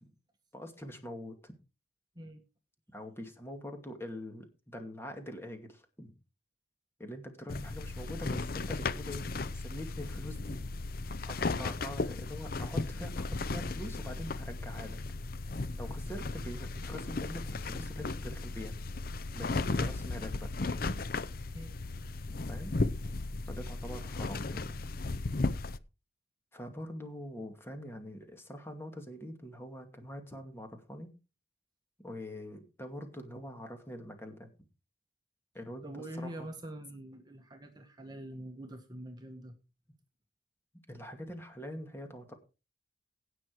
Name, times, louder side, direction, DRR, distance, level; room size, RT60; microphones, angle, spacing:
voice 1, 0.5-1.5 2.9-6.1 7.0-9.3 9.5-10.6 11.3-15.0 15.8-18.8 19.3-20.5 22.3-22.8 23.5-24.8 26.5-31.1 32.0-34.5 35.5-36.5 40.9-42.3, equal, 15° left, 5 dB, 2.3 m, -44 dB
sound 1, 7.5-25.8, left 3 dB, 50° left, 0.7 m, -35 dB
voice 2, 23.8-24.3 35.8-39.6, right 1 dB, 20° right, 4 dB, 1.5 m, -45 dB
17.0 x 6.3 x 4.7 m, 0.31 s
head